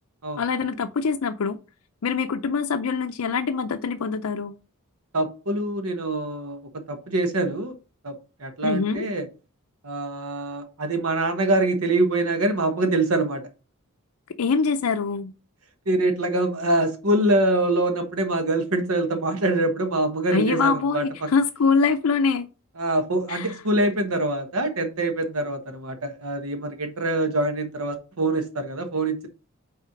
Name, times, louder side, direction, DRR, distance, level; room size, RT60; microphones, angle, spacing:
voice 1, 0.4-1.6 2.0-4.5 8.6-9.1 14.4-15.3 20.3-22.5 23.3-23.6, left 5 dB, 70° left, 0.5 m, -24 dB
voice 2, 5.1-6.6 6.9-7.7 8.0-8.1 8.4-9.2 9.8-13.4 15.9-21.0 22.8-29.3, right 2 dB, 75° right, 1.2 m, -24 dB
5.7 x 4.3 x 5.8 m
head